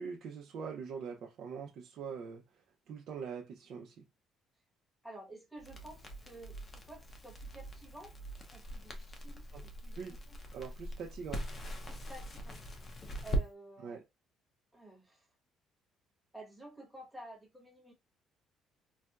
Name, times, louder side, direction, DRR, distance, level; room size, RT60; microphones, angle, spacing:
voice 1, 0.0-4.0 9.5-9.6 10.0-10.2 10.5-11.5 13.8-14.0, right 6 dB, 60° right, 0.6 m, -43 dB
voice 2, 5.0-8.1 8.5-10.4 11.9-14.0 14.7-15.3 16.3-17.9, right 1 dB, ahead, 1.1 m, -52 dB
Crackle, 5.6-13.5, right 1 dB, 25° left, 0.6 m, -41 dB
4.2 x 2.2 x 2.3 m
cardioid pair, 145°, 0 cm